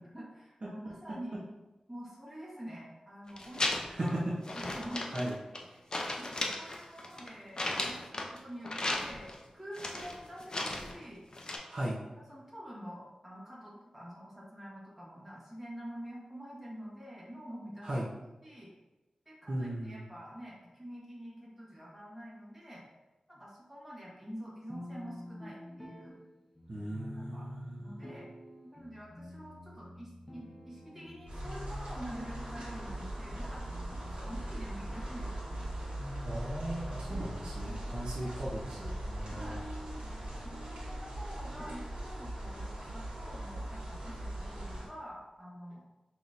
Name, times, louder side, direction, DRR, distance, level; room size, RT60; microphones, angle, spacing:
voice 1, 0.1-1.5 1.9-4.2 4.5-5.3 5.7-11.2 12.3-18.1 18.4-18.7 19.2-22.9 23.3-26.2 27.1-27.5 27.8-28.3 28.7-35.5 37.7-37.9 38.2-38.3 39.2-39.6 40.3-45.9, equal, 10° right, -6 dB, 1.4 m, -47 dB
sound 1, 3.3-4.1 4.4-5.7 5.9-8.4 8.6-9.4 9.7-11.0 11.3-11.6, left 2 dB, 40° left, 0.5 m, -35 dB
voice 2, 11.7-12.0 17.8-18.0 19.5-20.0 26.7-28.2 36.2-39.6, right 1 dB, 50° right, -6 dB, 0.8 m, -38 dB
sound 2, 24.7-42.7, left 1 dB, 5° left, 1.0 m, -49 dB
sound 3, 31.3-44.9, right 1 dB, 70° right, 1.4 m, -40 dB
5.6 x 3.0 x 2.6 m, 1.1 s
wide cardioid pair, 105°, 2 cm